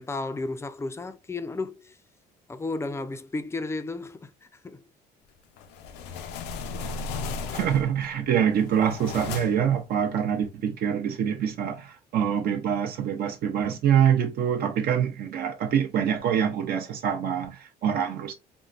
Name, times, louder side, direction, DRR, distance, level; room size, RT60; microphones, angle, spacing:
voice 1, 0.0-2.0 2.5-4.3 4.6-4.8, left 3 dB, 15° left, 0.3 m, -33 dB
sound 1, 5.6-8.0 8.5-9.7, left 4 dB, 90° left, 0.5 m, -35 dB
voice 2, 7.5-18.3, right 8 dB, 65° right, 0.6 m, -25 dB
3.7 x 2.1 x 2.4 m
cardioid pair, 110°, 17 cm